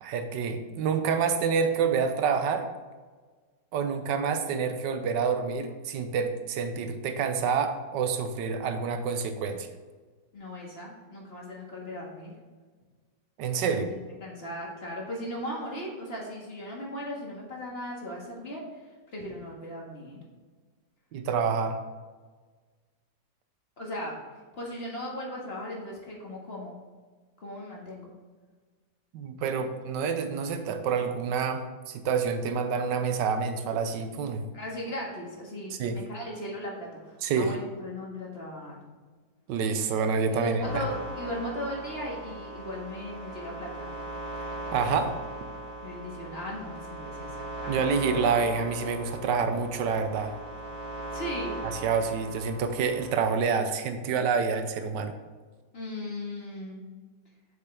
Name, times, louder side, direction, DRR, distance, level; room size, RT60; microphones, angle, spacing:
voice 1, 0.0-2.7 3.7-9.7 13.4-13.9 21.1-21.8 29.1-34.4 35.7-36.0 37.2-37.5 39.5-40.8 44.7-45.1 47.7-50.3 51.6-55.1, right 5 dB, 85° right, 8 dB, 1.3 m, -28 dB
voice 2, 10.3-12.3 13.7-18.6 19.1-20.2 23.8-24.2 24.6-26.8 27.4-28.1 34.5-38.8 40.4-43.9 45.8-47.7 51.1-51.5 55.7-56.9, left 1 dB, 35° left, -2 dB, 1.8 m, -37 dB
sound 1, 40.6-53.3, right 2 dB, 35° right, 1.9 m, -39 dB
7.2 x 6.6 x 3.4 m, 1.4 s
omnidirectional pair, 1.9 m